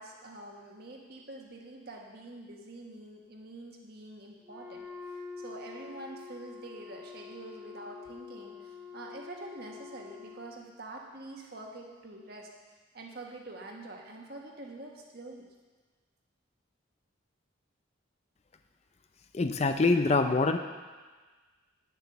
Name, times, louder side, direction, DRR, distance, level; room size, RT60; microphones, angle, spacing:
voice 1, 0.0-12.5 12.9-15.5, right 2 dB, 50° right, 0 dB, 1.5 m, -46 dB
Wind instrument woodwind instrument, 4.4-10.5, left 5 dB, 5° right, 1.0 m, -46 dB
voice 2, 19.3-20.6, left 3 dB, 30° left, 7 dB, 0.4 m, -25 dB
9.3 x 7.6 x 6.8 m, 1.4 s
head